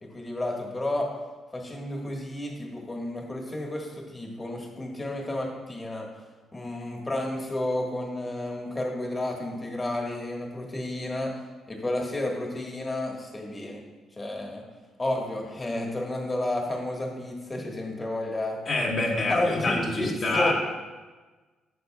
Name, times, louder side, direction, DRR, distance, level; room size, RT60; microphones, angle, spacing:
voice 1, 0.0-1.1 1.5-6.1 6.5-11.3 11.7-13.8 14.2-14.6 15.0-18.6 19.3-20.5, left 1 dB, 25° left, 0 dB, 1.4 m, -31 dB
voice 2, 18.7-20.5, left 2 dB, 55° left, -3 dB, 1.7 m, -26 dB
9.4 x 6.6 x 2.3 m, 1.3 s
cardioid pair, 90°, 0 cm